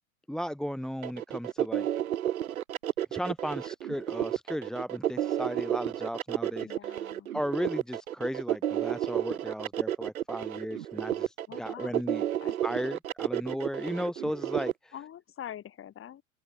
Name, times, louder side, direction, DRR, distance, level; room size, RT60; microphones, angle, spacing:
voice 1, 0.3-1.9 3.1-6.9 7.3-12.3 12.6-14.9, equal, ahead, 1.4 m, -35 dB
sound 1, 1.0-14.7, right 11 dB, 80° right, 0.8 m, -31 dB
voice 2, 6.6-7.3 11.5-11.9 12.4-12.8 14.9-16.2, left 10 dB, 30° left, 6.2 m, -44 dB
open air
hypercardioid pair, 95°, 42 cm